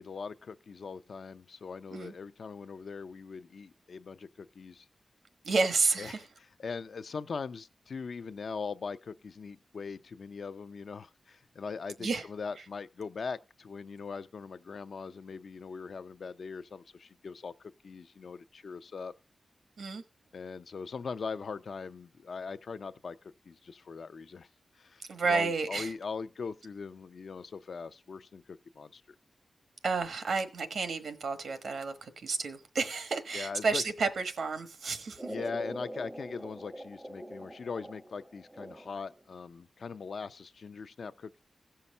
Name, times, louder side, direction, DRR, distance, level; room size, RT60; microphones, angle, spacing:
voice 1, 0.0-4.9 6.0-6.3 6.6-19.1 20.3-24.5 24.8-29.0 33.3-33.8 35.3-41.4, left 5 dB, 60° left, 0.5 m, -41 dB
voice 2, 5.4-6.2 12.0-12.2 19.8-20.0 25.1-25.9 29.8-35.3, right 4 dB, 85° right, 1.2 m, -31 dB
sound 1, 35.2-39.2, right 1 dB, 15° right, 0.5 m, -44 dB
16.5 x 5.7 x 5.4 m
wide cardioid pair, 155°, 0 cm